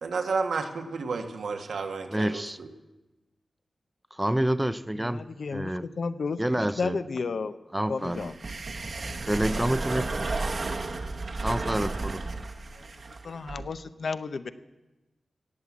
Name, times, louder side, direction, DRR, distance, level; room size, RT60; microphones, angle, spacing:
voice 1, 0.0-2.7, right 4 dB, 85° right, 5 dB, 1.4 m, -31 dB
voice 2, 2.1-2.6 4.1-5.2 5.5-5.9 6.4-7.0 7.7-8.3 9.3-10.7 11.4-12.2, right 1 dB, 10° right, 14 dB, 0.4 m, -28 dB
voice 3, 5.0-5.7 6.0-6.4 6.8-7.5 7.9-8.3 13.2-14.5, left 4 dB, 60° left, 13 dB, 0.7 m, -32 dB
sound 1, 8.0-13.7, right 3 dB, 50° right, 1.1 m, -33 dB
17.0 x 7.6 x 8.4 m, 1.1 s
wide cardioid pair, 140°, 0 cm